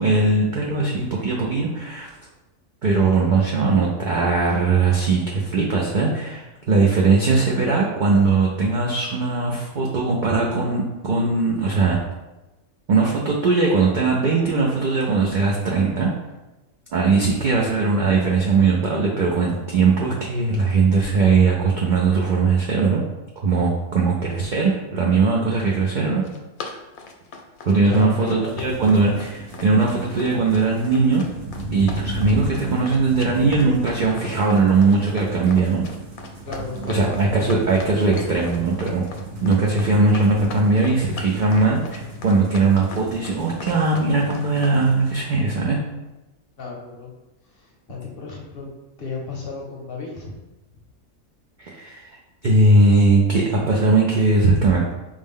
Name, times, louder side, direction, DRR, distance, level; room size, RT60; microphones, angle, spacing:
voice 1, 0.0-2.1 2.8-12.0 12.9-16.1 16.9-23.0 23.4-26.2 27.6-31.2 31.7-35.8 36.9-39.0 39.4-45.8 51.6-52.1 52.4-54.9, right 3 dB, 70° right, -2 dB, 0.4 m, -19 dB
Run, 26.0-44.8, left 4 dB, 85° left, 1.0 m, -39 dB
voice 2, 27.8-28.8 36.4-37.2 46.6-47.1 47.4-48.7 49.0-50.3, left 4 dB, 55° left, -2 dB, 0.7 m, -33 dB
sound 1, 28.4-45.2, right 1 dB, 55° right, 0.9 m, -35 dB
5.0 x 2.1 x 3.5 m, 1.0 s
omnidirectional pair, 1.4 m